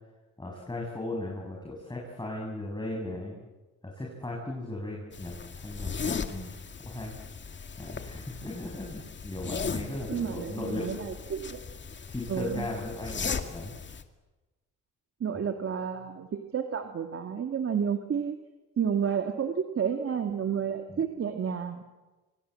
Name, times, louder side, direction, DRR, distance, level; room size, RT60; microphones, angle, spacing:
voice 1, 0.4-3.4 3.8-6.5 6.8-7.1 7.8-10.8 12.1-13.7 20.9-21.1, left 2 dB, 15° left, -2 dB, 6.9 m, -37 dB
sound 1, 5.1-14.0, left 5 dB, 40° left, 2.2 m, -37 dB
voice 2, 10.1-11.6 12.3-12.7 15.2-18.4 18.8-21.8, right 7 dB, 50° right, 5 dB, 2.2 m, -31 dB
27.0 x 25.0 x 7.8 m, 1.2 s
cardioid pair, 90°, 30 cm